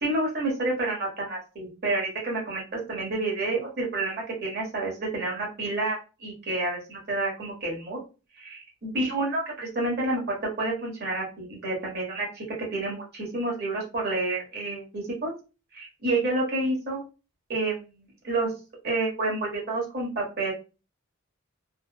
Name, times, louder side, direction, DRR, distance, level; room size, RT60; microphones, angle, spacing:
voice 1, 0.0-8.0 8.4-12.4 12.7-15.3 15.7-17.0 17.5-18.5 18.8-20.5, right 2 dB, 45° right, -2 dB, 1.2 m, -29 dB
3.3 x 2.0 x 2.2 m, 0.32 s
head